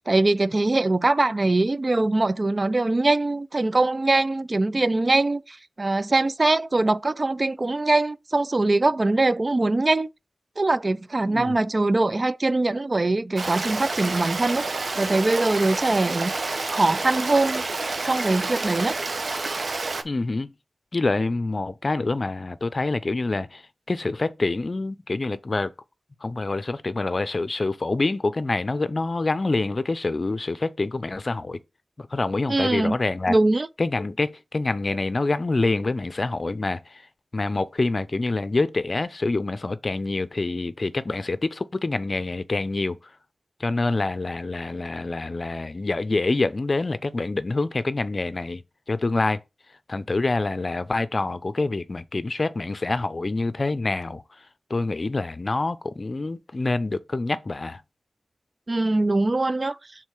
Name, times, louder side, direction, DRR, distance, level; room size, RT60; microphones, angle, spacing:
voice 1, 0.0-10.1 10.6-14.6 15.0-16.3 16.7-17.6 18.0-19.0 32.5-33.0 33.3-33.7 58.7-59.8, right 2 dB, 45° right, 0.4 m, -22 dB
Stream, 13.4-20.0, right 3 dB, 70° right, 0.9 m, -29 dB
voice 2, 20.0-20.5 20.9-23.6 23.9-25.7 26.2-31.6 32.0-33.3 33.8-37.0 37.3-43.0 43.6-48.6 48.9-49.4 49.9-54.2 54.7-57.8, left 3 dB, 55° left, 0.6 m, -26 dB
6.3 x 3.7 x 4.8 m
wide cardioid pair, 60°, 0 cm